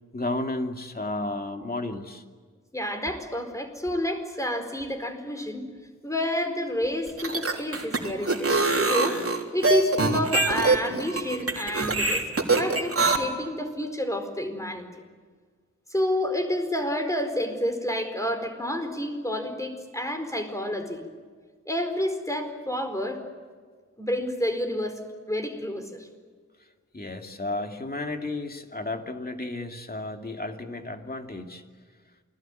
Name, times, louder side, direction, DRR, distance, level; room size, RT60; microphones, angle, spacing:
voice 1, 0.1-2.2 26.9-31.6, left 2 dB, 30° left, 4 dB, 2.6 m, -33 dB
voice 2, 2.7-5.6 6.0-9.2 9.5-14.8 15.9-21.0 21.6-23.2 24.0-25.0 25.3-26.1, left 1 dB, 10° left, 6 dB, 4.6 m, -29 dB
sound 1, 7.1-13.2, right 3 dB, 50° right, 3.5 m, -24 dB
28.5 x 21.5 x 9.2 m, 1.5 s
wide cardioid pair, 105°, 30 cm